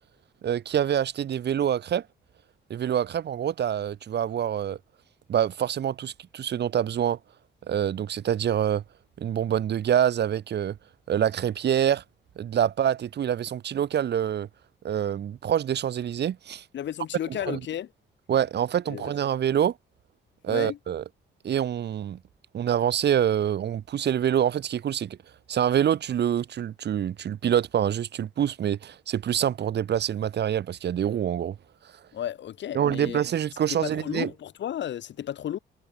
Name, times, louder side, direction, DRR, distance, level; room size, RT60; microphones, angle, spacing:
voice 1, 0.4-2.0 2.7-4.8 5.3-7.2 7.7-8.8 9.2-10.8 11.1-12.0 12.4-14.5 14.8-16.6 17.5-17.6 18.3-19.7 20.4-21.0 21.4-22.2 22.5-25.2 25.5-31.5 32.7-34.3, right 9 dB, 60° right, 1.6 m, -26 dB
voice 2, 16.7-17.9 18.9-19.1 20.5-20.8 32.1-33.2 33.7-35.6, left 10 dB, 65° left, 1.9 m, -33 dB
cardioid pair, 90°, 20 cm